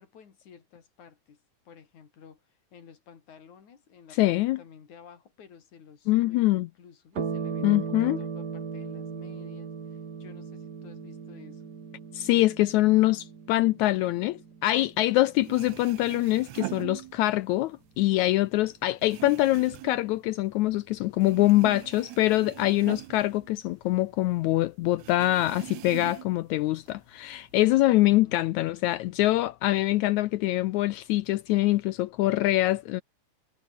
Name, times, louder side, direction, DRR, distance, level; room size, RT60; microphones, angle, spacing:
voice 1, 0.0-1.4 1.7-11.7 19.5-19.8 28.2-29.3, left 7 dB, 60° left, 4.3 m, -53 dB
voice 2, 4.2-4.6 6.1-6.7 7.6-8.2 12.1-33.0, left 17 dB, 85° left, 1.7 m, -24 dB
sound 1, 7.1-16.0, right 6 dB, 35° right, 2.1 m, -38 dB
sound 2, 15.1-15.2 15.4-17.6 17.9-20.9 21.2-24.2 24.4-24.5 25.0-26.5 26.9-27.6, right 16 dB, 75° right, 1.8 m, -42 dB
omnidirectional pair, 3.9 m